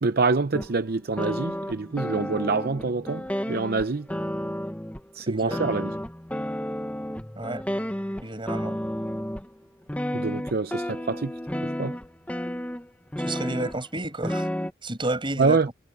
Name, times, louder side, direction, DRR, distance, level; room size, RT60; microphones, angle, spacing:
voice 1, 0.0-4.1 5.1-5.9 10.1-11.3 11.6-12.0 15.4-15.7, right 4 dB, 55° right, 0.7 m, -26 dB
sound 1, 0.5-0.8 1.2-5.0 5.5-9.5 9.9-13.8 14.2-14.7, equal, 10° left, 1.3 m, -31 dB
voice 2, 5.3-5.6 7.4-7.6 8.2-8.7 13.2-14.5 14.8-15.7, right 2 dB, 25° right, 6.1 m, -31 dB
head